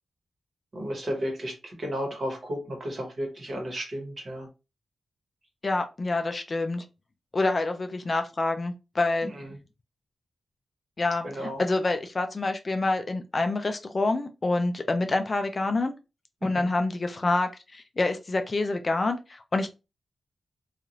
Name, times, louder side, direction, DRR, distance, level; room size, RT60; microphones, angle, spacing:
voice 1, 0.7-4.5 9.2-9.6 11.2-11.6 16.4-16.7, equal, 40° right, 1 dB, 1.2 m, -33 dB
voice 2, 5.6-6.8 7.3-9.3 11.0-15.9 16.4-19.7, left 2 dB, 30° left, 6 dB, 0.3 m, -27 dB
2.6 x 2.4 x 2.9 m, 0.28 s
wide cardioid pair, 140°, 0 cm